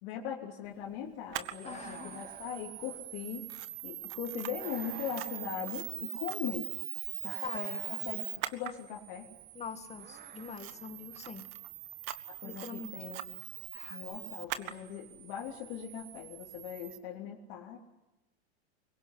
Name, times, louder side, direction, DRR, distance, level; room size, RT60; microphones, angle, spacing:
voice 1, 0.0-3.5 3.8-6.7 7.2-8.2 8.5-9.3 12.3-13.4 13.9-17.8, left 9 dB, 55° left, -3 dB, 3.7 m, -40 dB
Camera, 1.3-17.0, right 15 dB, 60° right, 1.6 m, -42 dB
voice 2, 1.6-2.2 7.4-7.7 9.5-11.4 12.4-13.1 13.7-14.0, left 6 dB, 20° left, 8 dB, 2.1 m, -44 dB
sound 1, 1.6-3.4 4.6-6.1 7.2-8.6 9.9-11.0, right 7 dB, 25° right, 1.9 m, -51 dB
25.0 x 23.0 x 9.9 m, 1.0 s
supercardioid pair, 140°, 33 cm